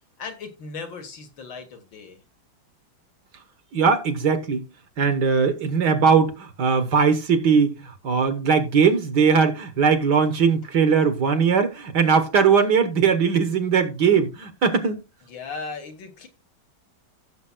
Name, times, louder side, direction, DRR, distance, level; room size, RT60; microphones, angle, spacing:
voice 1, 0.2-2.2 15.3-16.3, left 4 dB, 65° left, 2.2 m, -37 dB
voice 2, 3.7-4.6 5.0-15.0, right 6 dB, 60° right, 1.7 m, -20 dB
15.5 x 7.0 x 2.3 m
omnidirectional pair, 2.3 m